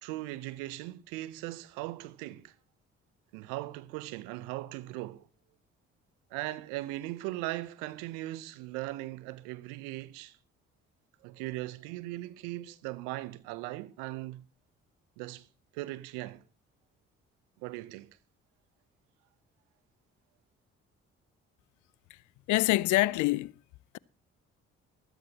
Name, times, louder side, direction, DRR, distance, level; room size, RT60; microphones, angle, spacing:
voice 1, 0.0-2.5 3.3-5.3 6.3-10.4 11.2-14.4 15.2-15.5 15.7-16.4 17.6-18.2, right 17 dB, 85° right, 0.7 m, -39 dB
voice 2, 22.5-23.5, left 19 dB, 70° left, 0.5 m, -25 dB
15.5 x 13.0 x 2.8 m
hypercardioid pair, 50°, 31 cm